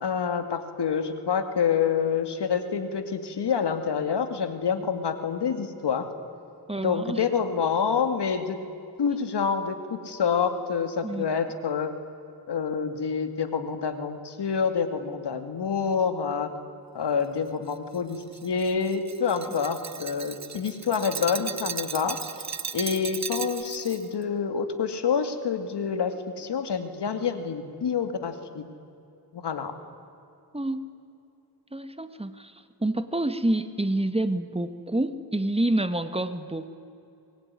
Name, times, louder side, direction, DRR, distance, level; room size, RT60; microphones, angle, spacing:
voice 1, 0.0-6.1 6.8-8.6 9.0-11.9 12.5-16.5 16.9-22.2 22.7-28.7 29.3-29.7, left 6 dB, 80° left, 8 dB, 2.5 m, -27 dB
voice 2, 6.7-7.2 11.0-11.3 30.5-30.9 31.7-36.7, right 1 dB, 15° right, 10 dB, 1.6 m, -28 dB
Glass, 17.7-24.0, right 6 dB, 40° right, 1.1 m, -36 dB
25.0 x 22.0 x 9.8 m, 2.7 s
cardioid pair, 75°, 40 cm